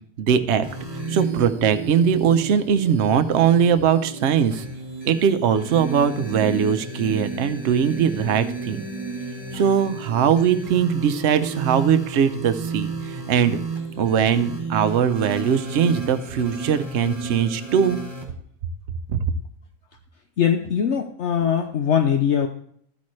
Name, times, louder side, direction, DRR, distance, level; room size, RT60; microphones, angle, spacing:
voice 1, 0.2-0.7 1.1-4.6 5.0-8.8 9.5-13.6 14.0-18.0 19.1-19.2, right 7 dB, 60° right, 9 dB, 0.9 m, -20 dB
sound 1, 0.6-18.2, right 4 dB, 25° right, 2.5 m, -32 dB
voice 2, 20.4-22.5, left 8 dB, 60° left, 5 dB, 0.9 m, -21 dB
13.0 x 8.4 x 3.2 m, 0.64 s
omnidirectional pair, 1.4 m